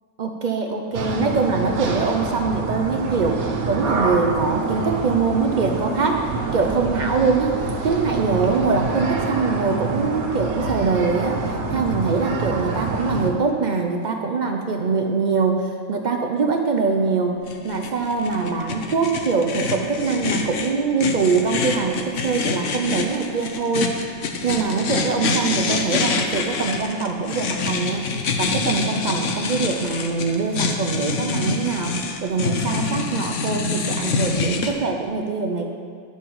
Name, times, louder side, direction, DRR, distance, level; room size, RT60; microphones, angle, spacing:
voice 1, 0.2-17.4 17.6-23.9 24.4-35.7, right 4 dB, 65° right, 3 dB, 0.4 m, -23 dB
sound 1, 0.9-13.3, right 3 dB, 85° right, 1.4 m, -26 dB
sound 2, 17.5-34.7, left 4 dB, 65° left, 1.0 m, -26 dB
10.5 x 5.6 x 4.6 m, 2.1 s
omnidirectional pair, 1.5 m